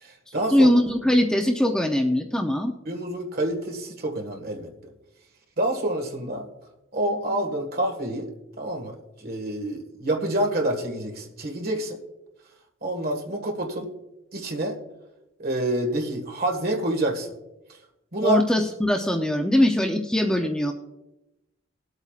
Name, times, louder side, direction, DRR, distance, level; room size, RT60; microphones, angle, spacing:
voice 1, 0.0-0.7 2.9-4.7 5.6-6.5 6.9-8.3 8.6-12.0 12.8-13.9 14.3-14.8 15.4-17.3 18.1-18.4, right 1 dB, 45° right, 3 dB, 1.7 m, -27 dB
voice 2, 0.5-2.7 18.2-20.7, left 1 dB, 5° left, 3 dB, 0.5 m, -21 dB
20.0 x 8.1 x 2.4 m, 0.96 s
head